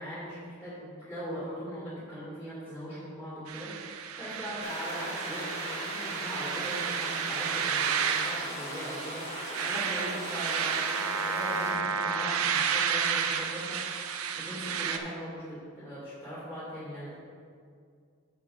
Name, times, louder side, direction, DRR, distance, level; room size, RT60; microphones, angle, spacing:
voice 1, 0.0-17.1, equal, 10° left, -12 dB, 2.5 m, -40 dB
sound 1, 3.5-15.0, right 7 dB, 75° right, 0.6 m, -31 dB
sound 2, 4.6-11.7, left 1 dB, 30° left, 1.6 m, -39 dB
7.9 x 6.8 x 5.1 m, 2.2 s
head